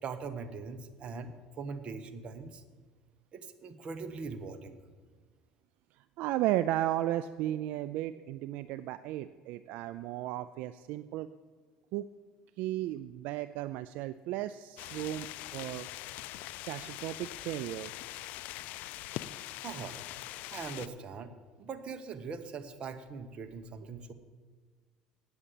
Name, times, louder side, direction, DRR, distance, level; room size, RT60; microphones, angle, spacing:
voice 1, 0.0-2.6 3.3-4.8 19.6-20.0 20.5-21.3 21.6-24.1, right 5 dB, 40° right, 8 dB, 1.1 m, -41 dB
voice 2, 6.2-11.3 11.9-12.1 12.6-15.9 16.6-17.9, right 14 dB, 70° right, 13 dB, 0.3 m, -34 dB
sound 1, 14.8-20.9, left 15 dB, 70° left, 0.4 m, -42 dB
8.9 x 7.1 x 8.3 m, 1.4 s
supercardioid pair, 105°, 3 cm